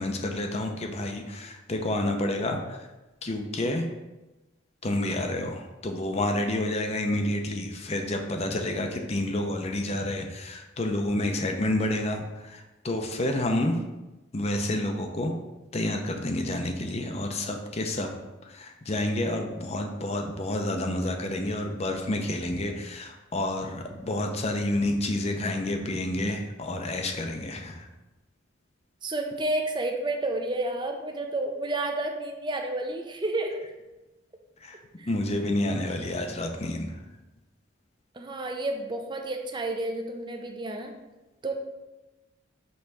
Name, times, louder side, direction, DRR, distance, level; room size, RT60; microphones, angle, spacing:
voice 1, 0.0-2.9 3.2-3.9 4.8-13.8 14.3-15.3 15.7-18.1 18.4-27.9 34.6-34.8 35.1-37.0, left 1 dB, 30° left, 4 dB, 0.6 m, -29 dB
voice 2, 29.0-33.6 35.0-35.1 38.1-40.9 41.4-41.5, right 2 dB, 25° right, 3 dB, 0.6 m, -30 dB
5.4 x 3.9 x 4.5 m, 1.1 s
head